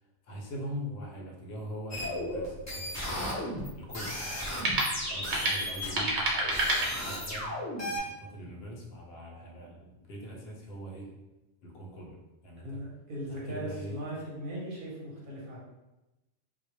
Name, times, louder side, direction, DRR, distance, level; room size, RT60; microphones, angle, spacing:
voice 1, 0.2-3.1 3.7-4.2 4.9-6.2 6.9-11.1 11.6-12.8 13.3-14.0, equal, 65° left, -1 dB, 0.8 m, -42 dB
sound 1, 1.9-8.0, left 1 dB, 25° left, 0.3 m, -35 dB
sound 2, 2.2-7.5, right 2 dB, 85° right, 0.9 m, -32 dB
voice 2, 12.6-15.6, right 1 dB, 50° right, -4 dB, 0.8 m, -39 dB
2.1 x 2.0 x 3.0 m, 1.0 s
omnidirectional pair, 1.2 m